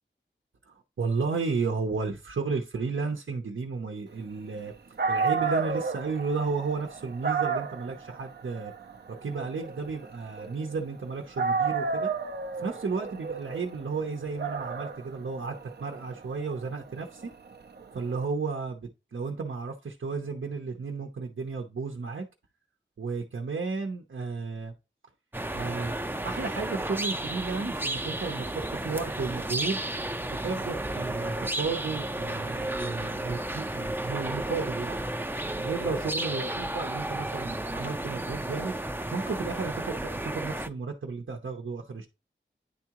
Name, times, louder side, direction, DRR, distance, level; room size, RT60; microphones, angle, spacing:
voice 1, 0.7-4.7 5.1-8.7 9.2-12.1 12.6-17.3 17.9-22.2 23.0-24.7 25.5-29.8 30.3-35.0 35.6-38.8 39.1-42.1, right 4 dB, 85° right, 0.8 m, -33 dB
Dog, 4.7-4.8 5.0-11.0 11.4-18.1, right 5 dB, 55° right, 0.6 m, -32 dB
sound 1, 25.3-40.7, right 1 dB, 10° right, 0.5 m, -33 dB
9.9 x 3.6 x 2.9 m
wide cardioid pair, 65°, 20 cm